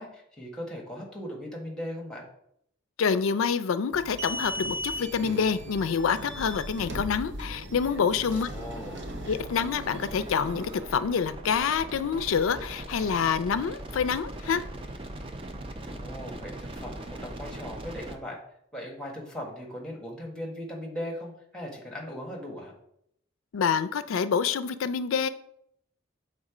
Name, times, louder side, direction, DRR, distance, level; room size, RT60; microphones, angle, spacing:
voice 1, 0.0-2.3 8.3-9.1 15.9-18.4 18.7-22.7, equal, 5° left, -1 dB, 1.3 m, -39 dB
voice 2, 3.0-8.5 9.3-14.6 23.5-25.3, left 6 dB, 85° left, 13 dB, 0.4 m, -27 dB
sound 1, 3.9-10.8, equal, 60° right, 0.8 m, -38 dB
sound 2, 8.6-18.2, right 1 dB, 25° right, 0.5 m, -41 dB
6.4 x 3.7 x 4.9 m, 0.74 s
head